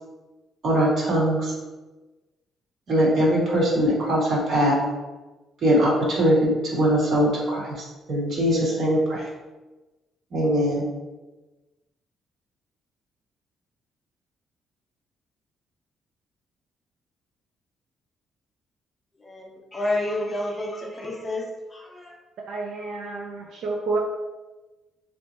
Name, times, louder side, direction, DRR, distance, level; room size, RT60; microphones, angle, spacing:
voice 1, 0.6-1.5 2.9-4.8 5.6-9.2 10.3-10.8, equal, 45° right, -4 dB, 1.2 m, -21 dB
voice 2, 19.2-21.5 21.7-22.2, left 1 dB, 10° left, -2 dB, 0.6 m, -29 dB
voice 3, 22.5-24.0, right 3 dB, 60° right, -2 dB, 0.5 m, -29 dB
3.4 x 2.7 x 4.2 m, 1.2 s
cardioid pair, 175°, 0 cm